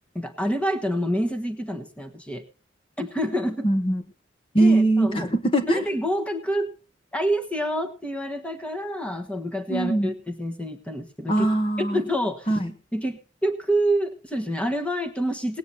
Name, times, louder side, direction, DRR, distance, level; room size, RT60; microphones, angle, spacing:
voice 1, 0.1-2.4 3.0-3.7 4.6-5.3 5.7-6.7 7.1-11.5 11.8-12.5 12.9-15.6, equal, 5° left, 7 dB, 1.3 m, -27 dB
voice 2, 3.6-4.0 4.5-5.9 9.7-10.1 11.3-12.0 12.5-12.7, right 2 dB, 30° left, 8 dB, 1.3 m, -21 dB
19.0 x 9.3 x 4.1 m, 0.34 s
head